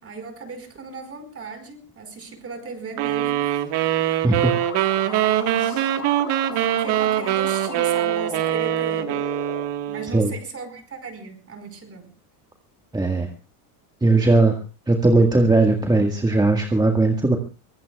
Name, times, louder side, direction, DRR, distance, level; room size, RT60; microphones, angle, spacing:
voice 1, 0.0-3.7 4.0-4.3 5.0-5.9 6.5-9.2 9.9-12.1, right 4 dB, 30° right, 7 dB, 5.0 m, -37 dB
sound 1, 3.0-10.2, right 13 dB, 60° right, 1.7 m, -23 dB
sound 2, 4.4-9.6, left 6 dB, 30° left, 2.8 m, -36 dB
voice 2, 12.9-13.3 14.0-14.6 14.9-17.4, right 2 dB, 10° right, 2 dB, 1.7 m, -18 dB
24.0 x 19.0 x 2.4 m, 0.31 s
supercardioid pair, 110°, 46 cm